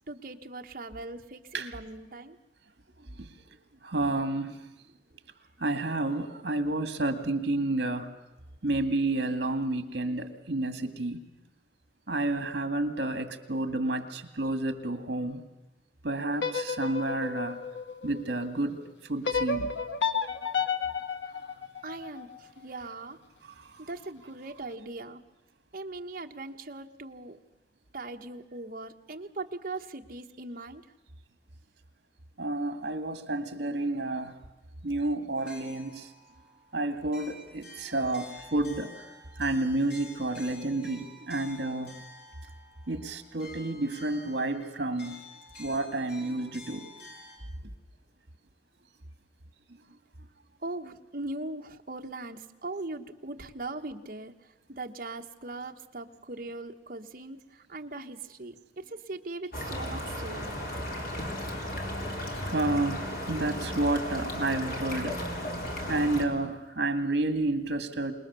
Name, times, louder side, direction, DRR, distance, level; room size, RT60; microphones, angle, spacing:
voice 1, 0.1-2.4 21.3-25.2 25.7-27.4 27.9-30.9 50.6-60.6, right 2 dB, 50° right, 4 dB, 1.2 m, -40 dB
voice 2, 3.8-4.6 5.6-8.1 8.6-11.2 12.1-15.4 16.0-17.6 18.0-19.7 23.6-23.9 32.4-34.4 34.8-36.1 36.7-39.1 39.4-42.0 42.9-45.2 45.6-46.9 62.4-65.2 65.9-68.1, right 2 dB, 65° right, 8 dB, 2.0 m, -30 dB
sound 1, 16.3-18.5 19.2-22.4, left 5 dB, 85° left, 1.2 m, -32 dB
sound 2, 35.4-47.4, left 2 dB, 70° left, 6.1 m, -50 dB
sound 3, 59.5-66.2, left 1 dB, 50° left, 3.5 m, -35 dB
27.0 x 20.0 x 6.9 m, 1.0 s
head